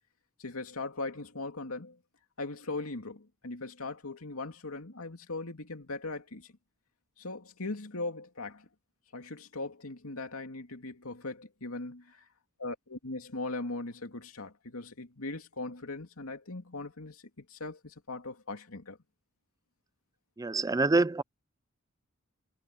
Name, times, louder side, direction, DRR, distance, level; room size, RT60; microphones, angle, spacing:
voice 1, 0.4-2.0 2.4-6.5 7.2-8.7 9.1-12.2 12.6-19.0, left 2 dB, 85° left, 2.7 m, -39 dB
voice 2, 20.4-21.2, right 3 dB, 15° right, 0.4 m, -26 dB
head